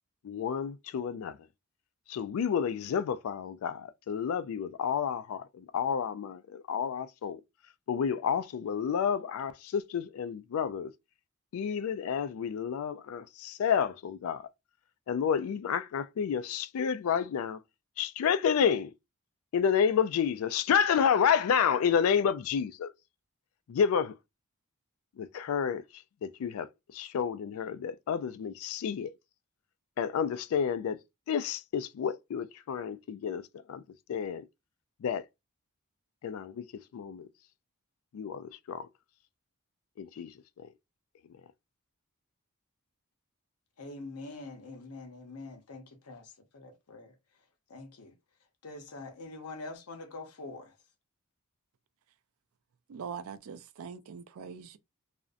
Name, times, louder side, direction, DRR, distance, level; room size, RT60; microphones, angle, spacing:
voice 1, 0.2-1.4 2.1-7.4 7.9-10.9 11.5-14.5 15.1-17.6 18.0-18.9 19.5-22.9 23.7-24.1 25.2-25.8 26.2-29.1 30.0-31.0 31.3-33.4 33.7-33.8 34.1-34.4 35.0-35.2 36.2-36.6 36.9-37.3 38.1-38.9 40.0-40.3 40.6-40.7, left 7 dB, 70° left, 0.3 m, -30 dB
voice 2, 43.8-47.1 47.7-48.1 48.6-50.7, left 3 dB, 90° left, 0.8 m, -45 dB
voice 3, 52.9-54.8, right 6 dB, 70° right, 0.4 m, -42 dB
2.5 x 2.1 x 2.4 m
head